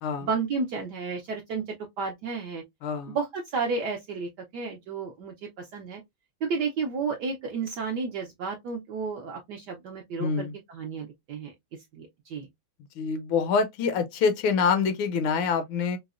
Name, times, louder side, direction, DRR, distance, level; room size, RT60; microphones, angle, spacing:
voice 1, 0.2-2.6 3.1-6.0 6.4-11.5 11.9-12.5, right 4 dB, 70° right, 1.0 m, -32 dB
voice 2, 2.8-3.2 10.2-10.5 13.0-16.0, left 5 dB, 75° left, 1.3 m, -26 dB
4.7 x 2.1 x 2.3 m
omnidirectional pair, 2.4 m